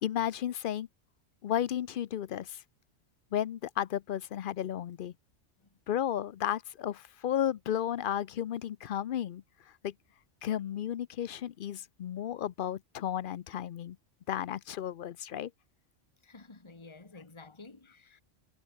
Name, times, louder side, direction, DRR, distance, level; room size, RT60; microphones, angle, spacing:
voice 1, 0.0-0.9 1.4-2.6 3.3-5.1 5.9-9.4 9.8-9.9 10.4-14.0 14.3-15.5, left 10 dB, 60° left, 0.6 m, -33 dB
voice 2, 16.2-18.2, left 3 dB, 25° left, 1.7 m, -52 dB
omnidirectional pair, 1.3 m